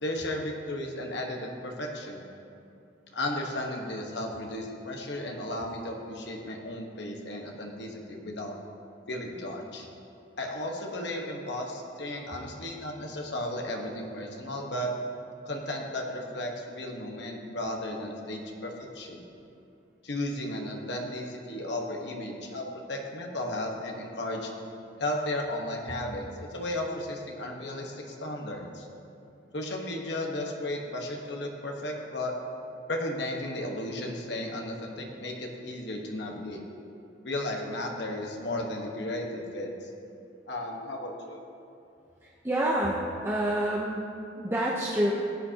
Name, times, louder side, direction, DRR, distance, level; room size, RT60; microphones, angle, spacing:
voice 1, 0.0-2.2 3.1-8.5 9.1-9.9 10.4-14.9 15.4-19.2 20.0-24.5 25.0-28.9 29.5-32.3 32.9-36.6 37.2-39.9 40.5-41.4, left 1 dB, 70° left, 1 dB, 1.3 m, -34 dB
voice 2, 42.2-45.1, right 1 dB, 15° right, -4 dB, 0.8 m, -28 dB
16.5 x 8.7 x 2.9 m, 2.6 s
head